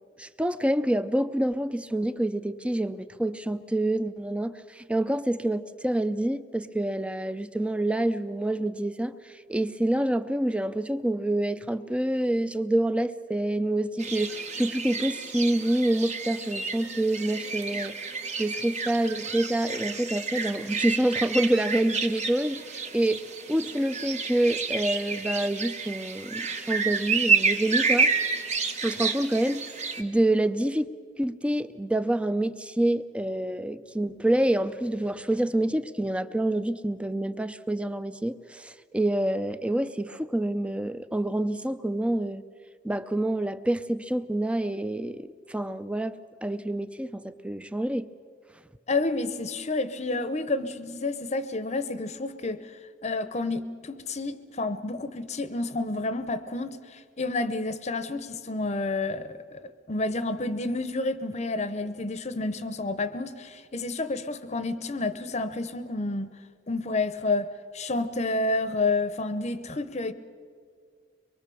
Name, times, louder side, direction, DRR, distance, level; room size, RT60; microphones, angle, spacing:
voice 1, 0.2-18.0 18.3-23.2 23.5-28.1 28.8-30.9 31.2-42.4 42.8-48.1, right 1 dB, 5° right, 13 dB, 0.5 m, -27 dB
sound 1, 14.0-30.0, right 5 dB, 40° right, 1.4 m, -30 dB
voice 2, 48.9-52.7 53.0-59.6 59.9-66.3 66.7-70.1, left 2 dB, 35° left, 12 dB, 0.8 m, -30 dB
24.0 x 22.5 x 7.0 m, 2.1 s
head